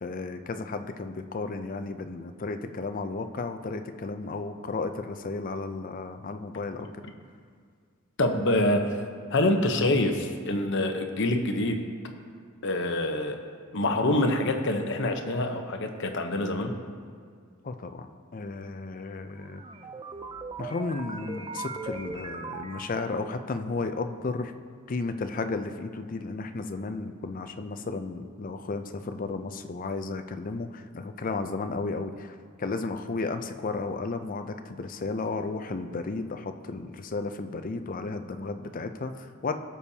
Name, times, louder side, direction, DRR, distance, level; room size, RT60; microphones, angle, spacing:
voice 1, 0.0-6.9 17.6-18.1 18.3-19.6 20.6-24.5 24.9-39.6, left 3 dB, 40° left, 8 dB, 0.5 m, -33 dB
voice 2, 8.2-8.9 9.3-11.8 12.6-13.4 13.7-16.7, left 1 dB, 55° left, 4 dB, 0.9 m, -25 dB
sound 1, 19.4-23.5, right 3 dB, 20° right, 0.4 m, -39 dB
17.5 x 6.9 x 2.8 m, 2.1 s
head